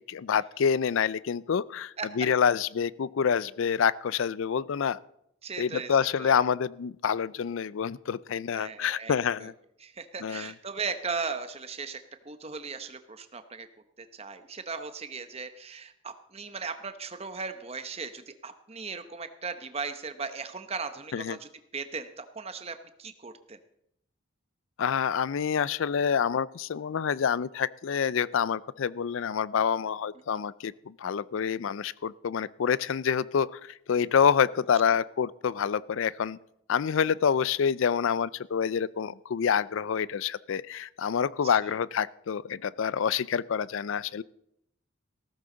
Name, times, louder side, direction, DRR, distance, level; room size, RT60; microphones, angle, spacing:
voice 1, 0.1-5.0 5.6-9.5 10.2-10.5 21.1-21.4 24.8-36.4 36.7-44.2, left 7 dB, 65° left, 20 dB, 0.4 m, -27 dB
voice 2, 5.4-6.4 8.5-9.5 9.8-12.0 12.2-13.7 14.0-23.6 34.9-35.0 41.4-41.7, right 5 dB, 30° right, 9 dB, 0.9 m, -38 dB
15.5 x 13.5 x 3.9 m, 0.76 s
head